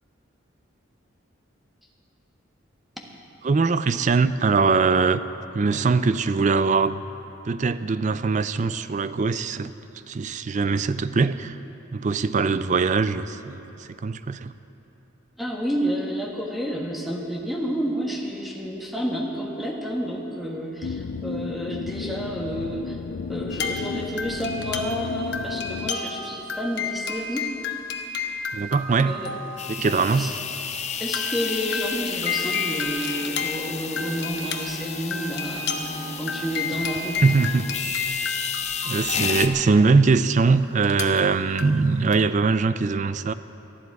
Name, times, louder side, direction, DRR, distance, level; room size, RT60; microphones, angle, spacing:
voice 1, 3.4-5.2 5.5-7.0 7.5-9.7 10.1-11.6 11.9-14.5 28.5-29.1 29.7-30.3 37.2-37.7 38.8-43.3, right 4 dB, 40° right, 14 dB, 0.4 m, -22 dB
voice 2, 15.4-23.0 23.3-27.5 29.0-29.4 30.1-30.3 31.0-37.2, equal, ahead, -1 dB, 1.4 m, -30 dB
sound 1, 20.8-25.9, left 5 dB, 85° left, 0.4 m, -33 dB
sound 2, 23.5-29.8 30.3-30.4 31.0-40.1 40.8-42.2, left 4 dB, 55° left, 0.9 m, -32 dB
sound 3, 29.6-39.5, left 7 dB, 35° left, 0.6 m, -32 dB
19.0 x 12.5 x 4.7 m, 3.0 s
head